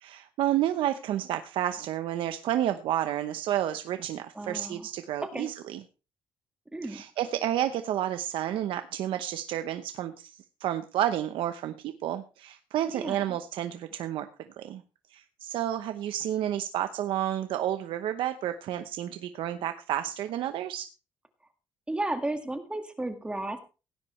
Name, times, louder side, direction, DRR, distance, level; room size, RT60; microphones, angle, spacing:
voice 1, 0.0-5.8 6.8-10.3 10.6-14.3 14.6-14.8 15.1-20.9, right 12 dB, 80° right, 9 dB, 0.9 m, -30 dB
voice 2, 4.4-4.9 5.2-5.5 6.7-7.0 12.8-13.4 21.9-23.6, right 2 dB, 10° right, 7 dB, 1.8 m, -33 dB
17.0 x 10.0 x 3.2 m, 0.32 s
cardioid pair, 115°, 9 cm